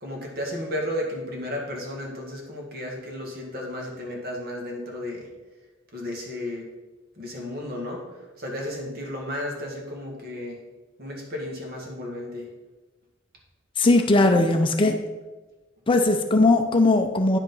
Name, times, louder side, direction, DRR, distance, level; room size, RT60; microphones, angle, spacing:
voice 1, 0.0-5.3 5.9-6.7 7.2-8.0 8.4-10.6 11.0-12.5, left 1 dB, 50° right, -1 dB, 1.9 m, -33 dB
voice 2, 13.8-15.0 15.9-17.4, left 2 dB, 25° left, 5 dB, 0.5 m, -19 dB
9.7 x 5.2 x 5.4 m, 1.2 s
head